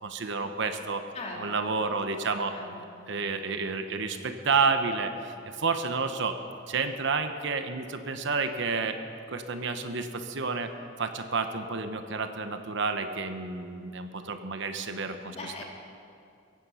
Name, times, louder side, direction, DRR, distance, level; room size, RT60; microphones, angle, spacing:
voice 1, 0.0-1.0 1.4-2.5 3.1-6.4 6.7-9.0 9.3-10.7 11.0-15.4, right 4 dB, 65° right, 8 dB, 1.0 m, -30 dB
voice 2, 1.1-1.8 2.2-3.0 15.2-15.6, left 2 dB, 35° left, -1 dB, 2.8 m, -42 dB
16.5 x 15.0 x 5.7 m, 2.4 s
head